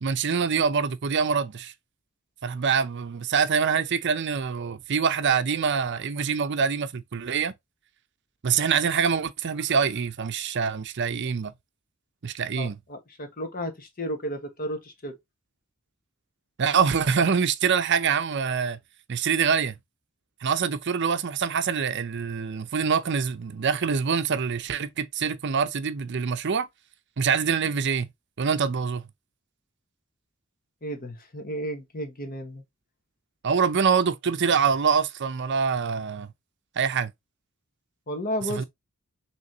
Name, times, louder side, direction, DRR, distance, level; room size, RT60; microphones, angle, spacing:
voice 1, 0.0-1.7 2.4-7.5 8.4-11.5 12.2-12.8 16.6-18.8 19.1-19.7 20.4-26.7 27.2-28.1 28.4-29.0 33.4-36.3 36.8-37.1 38.5-38.6, right 6 dB, 55° right, 0.6 m, -25 dB
voice 2, 12.5-15.2 30.8-32.6 38.1-38.6, equal, 45° left, 1.3 m, -33 dB
6.2 x 3.2 x 2.7 m
head